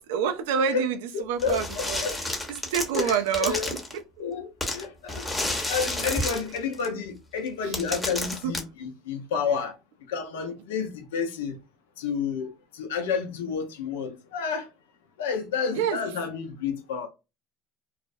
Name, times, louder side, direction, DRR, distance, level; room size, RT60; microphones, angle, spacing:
voice 1, 0.1-2.1 2.5-3.6 3.9-4.0 5.5-5.7 6.0-6.2 7.6-7.7 8.4-8.6 15.7-16.0, right 7 dB, 80° right, 0.4 m, -28 dB
voice 2, 1.1-2.2 2.9-3.7 4.2-5.3 5.7-9.7 10.1-11.6 12.0-14.7 15.2-17.1, left 6 dB, 90° left, 0.6 m, -30 dB
sound 1, 1.4-4.0 4.6-6.9 7.5-7.6 7.7-8.6, left 1 dB, 15° left, 0.8 m, -30 dB
2.4 x 2.1 x 2.5 m
supercardioid pair, 85°, 0 cm